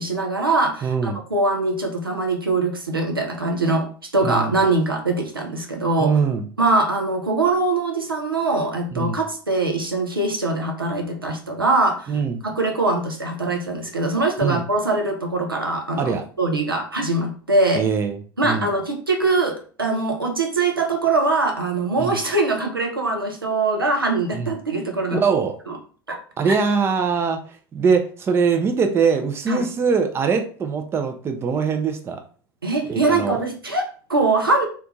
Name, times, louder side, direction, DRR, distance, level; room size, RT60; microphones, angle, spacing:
voice 1, 0.0-6.2 6.6-12.1 12.4-17.8 18.4-25.2 25.7-25.8 26.1-26.2 26.5-26.6 29.5-29.7 32.6-34.7, right 2 dB, 85° right, 2 dB, 0.5 m, -22 dB
voice 2, 0.8-1.2 4.2-4.5 6.0-6.5 8.9-9.2 12.1-12.4 14.4-14.6 16.0-16.3 17.8-18.7 22.0-22.2 24.3-24.5 25.1-25.6 26.4-27.4 27.7-32.2 32.9-33.4, right 5 dB, 20° right, 6 dB, 0.4 m, -22 dB
2.4 x 2.2 x 2.9 m, 0.41 s
figure-of-eight pair, 75°, 12 cm